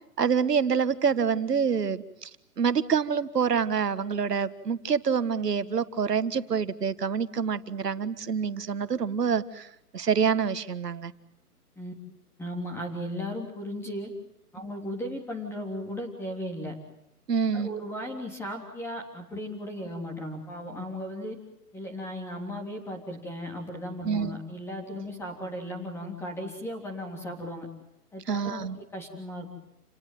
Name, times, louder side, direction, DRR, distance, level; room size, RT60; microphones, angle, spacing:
voice 1, 0.2-2.3 2.6-9.7 9.9-11.1 17.3-17.7 24.0-24.4 28.3-28.8, right 6 dB, 85° right, 13 dB, 1.8 m, -26 dB
voice 2, 12.4-14.1 14.5-16.8 17.5-21.4 21.7-27.7 28.1-28.7 28.9-29.5, equal, 5° left, 3 dB, 3.4 m, -36 dB
29.0 x 19.0 x 9.3 m, 0.81 s
hypercardioid pair, 155°, 46 cm